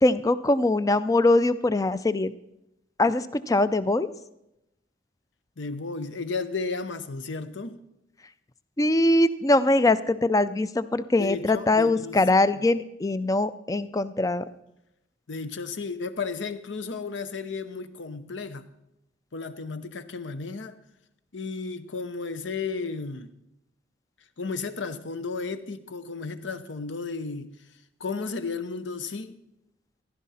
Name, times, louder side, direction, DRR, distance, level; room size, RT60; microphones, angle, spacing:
voice 1, 0.0-2.3 3.0-4.1 8.8-14.5, left 2 dB, 15° left, 0.4 m, -22 dB
voice 2, 5.6-7.8 11.2-12.2 15.3-18.7 19.3-20.7 21.3-23.3 24.4-27.5 28.0-29.4, left 4 dB, 70° left, 0.8 m, -33 dB
15.0 x 11.5 x 4.2 m
head